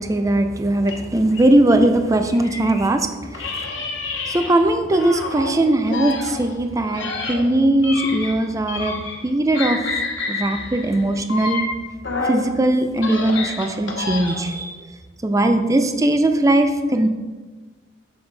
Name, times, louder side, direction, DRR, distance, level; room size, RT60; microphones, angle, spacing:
voice 1, 0.0-3.7 4.3-9.0 9.2-9.8 10.3-11.6 12.2-14.9 15.2-17.1, right 1 dB, 20° right, 7 dB, 0.5 m, -19 dB
sound 1, 0.8-2.9 3.3-5.5 5.9-9.3 9.5-12.5 12.9-14.6, left 3 dB, 80° left, 1.1 m, -29 dB
7.0 x 6.0 x 3.3 m, 1.3 s
head